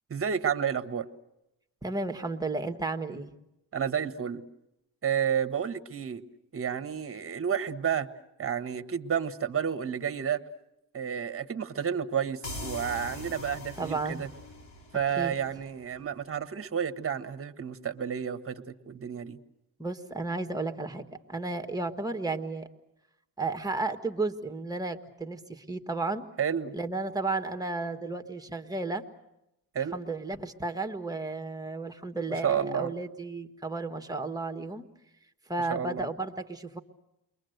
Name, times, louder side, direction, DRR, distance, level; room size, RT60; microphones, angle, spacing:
voice 1, 0.1-1.1 3.7-4.4 5.0-6.2 6.5-8.1 8.4-10.4 10.9-14.3 14.9-19.4 26.4-26.7 29.7-29.9 32.4-32.9 35.7-36.1, right 8 dB, 30° right, 10 dB, 1.4 m, -31 dB
voice 2, 1.8-3.3 13.8-14.2 15.2-15.3 19.8-22.7 23.4-26.2 26.7-29.0 29.9-34.8 35.5-36.8, right 3 dB, 10° right, 6 dB, 1.5 m, -33 dB
sound 1, 12.4-16.0, left 2 dB, 75° left, 5.6 m, -42 dB
30.0 x 22.5 x 8.0 m, 0.88 s
cardioid pair, 135°, 41 cm